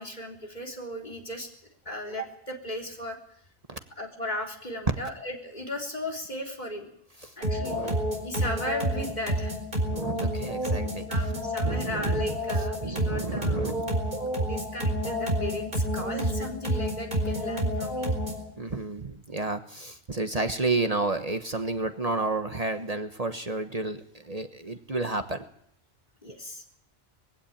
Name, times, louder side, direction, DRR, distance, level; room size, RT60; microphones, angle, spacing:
voice 1, 0.0-1.5 1.9-3.2 4.0-6.9 7.4-8.0 8.2-9.6 11.1-13.7 14.3-18.1 26.2-26.6, left 1 dB, 45° left, 1 dB, 3.6 m, -36 dB
voice 2, 7.2-8.0 8.4-8.5 9.9-11.1 11.6-12.3 12.8-14.1 18.6-25.4, right 3 dB, 40° right, 7 dB, 1.3 m, -31 dB
sound 1, 7.4-18.5, equal, 55° right, 4.7 m, -29 dB
21.5 x 16.0 x 8.8 m, 0.69 s
omnidirectional pair, 1.0 m